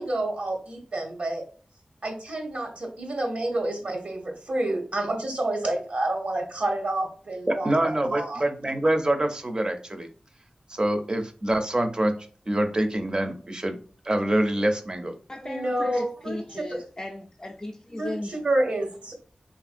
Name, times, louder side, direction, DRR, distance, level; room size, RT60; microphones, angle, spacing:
voice 1, 0.0-1.4 2.0-8.4 15.4-16.8 18.0-19.1, right 1 dB, 70° right, 0.7 m, -29 dB
voice 2, 7.5-10.1 10.7-12.1 12.5-13.8 14.0-15.1, right 1 dB, 35° right, 0.5 m, -25 dB
voice 3, 15.3-18.3, left 1 dB, 25° left, 0.3 m, -36 dB
3.1 x 2.5 x 2.4 m
wide cardioid pair, 75°, 2 cm